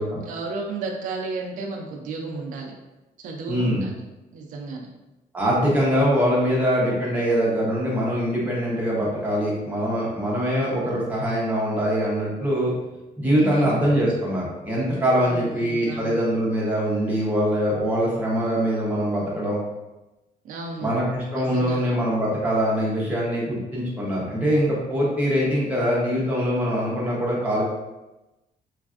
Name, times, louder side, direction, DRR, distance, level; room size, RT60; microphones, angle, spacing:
voice 1, 0.3-2.7 3.2-3.9 4.3-4.9 13.4-13.7 15.2-16.2 20.4-20.9 21.4-21.8, right 3 dB, 60° right, 1 dB, 0.4 m, -33 dB
voice 2, 3.5-3.8 5.3-12.7 13.2-19.6 20.8-27.6, equal, 10° right, -6 dB, 0.7 m, -23 dB
3.2 x 2.4 x 2.4 m, 1.0 s
cardioid pair, 170°, 16 cm